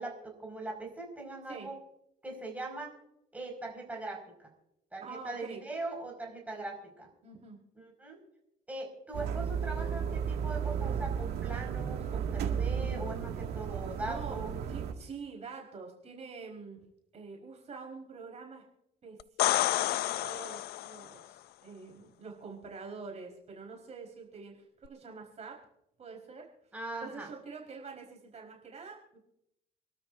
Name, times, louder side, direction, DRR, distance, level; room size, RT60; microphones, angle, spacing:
voice 1, 0.0-1.8 2.2-2.9 3.3-4.2 4.9-7.1 7.8-8.2 8.7-14.7 26.7-27.3, right 2 dB, 10° right, 0 dB, 5.3 m, -40 dB
voice 2, 5.0-5.6 7.2-7.6 14.0-16.8 17.1-18.6 19.0-25.6 26.0-26.5 27.0-29.2, right 4 dB, 40° right, 0 dB, 4.5 m, -46 dB
sound 1, 9.1-14.9, right 7 dB, 75° right, 2.1 m, -34 dB
sound 2, 19.2-21.1 24.8-24.9, left 15 dB, 70° left, 0.4 m, -29 dB
28.5 x 13.0 x 2.6 m, 0.80 s
cardioid pair, 110°, 17 cm